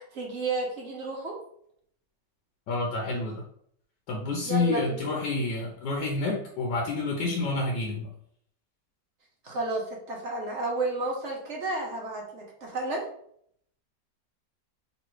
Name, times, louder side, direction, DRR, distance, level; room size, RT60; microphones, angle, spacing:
voice 1, 0.1-1.3 4.4-5.0 9.4-13.0, right 2 dB, 50° right, -1 dB, 0.9 m, -31 dB
voice 2, 2.7-3.4 4.1-8.1, left 3 dB, 80° left, -1 dB, 1.4 m, -29 dB
3.2 x 3.1 x 4.5 m, 0.67 s
omnidirectional pair, 1.9 m